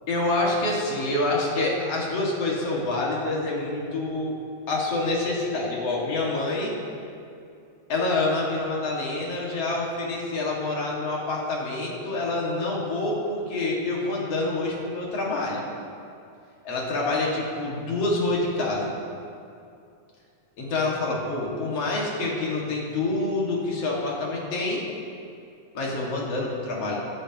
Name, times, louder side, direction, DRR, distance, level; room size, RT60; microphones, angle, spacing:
voice 1, 0.1-4.4 4.7-6.7 7.9-15.7 16.6-18.9 20.6-24.8 25.7-27.0, left 2 dB, 55° left, -4 dB, 3.0 m, -27 dB
22.5 x 9.9 x 3.0 m, 2.5 s
omnidirectional pair, 3.3 m